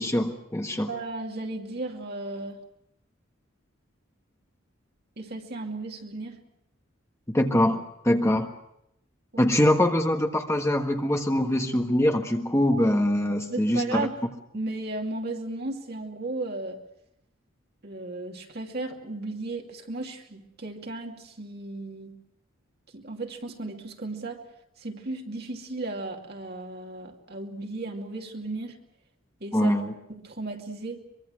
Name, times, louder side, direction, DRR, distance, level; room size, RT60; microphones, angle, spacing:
voice 1, 0.0-0.9 7.3-8.5 9.4-14.1 29.5-29.9, left 1 dB, 15° left, 4 dB, 1.4 m, -23 dB
voice 2, 0.9-2.6 5.2-6.4 9.3-9.5 13.5-14.2 14.5-16.8 17.8-22.2 22.9-24.4 24.8-28.8 29.4-29.8 30.1-31.0, right 2 dB, 50° right, 2 dB, 2.6 m, -35 dB
24.0 x 23.5 x 6.3 m, 0.79 s
head